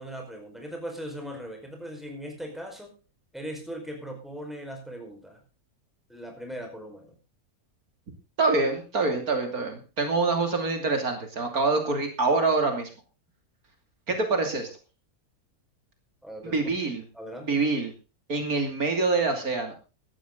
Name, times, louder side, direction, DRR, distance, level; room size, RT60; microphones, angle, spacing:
voice 1, 0.0-2.9 3.3-5.4 6.1-7.2 16.2-16.6 17.1-17.6, equal, ahead, 2 dB, 4.9 m, -39 dB
voice 2, 8.4-12.9 14.1-14.7 16.4-17.0 17.5-17.9 18.3-19.7, right 3 dB, 75° right, 5 dB, 3.3 m, -25 dB
16.5 x 12.5 x 3.9 m, 0.32 s
omnidirectional pair, 1.6 m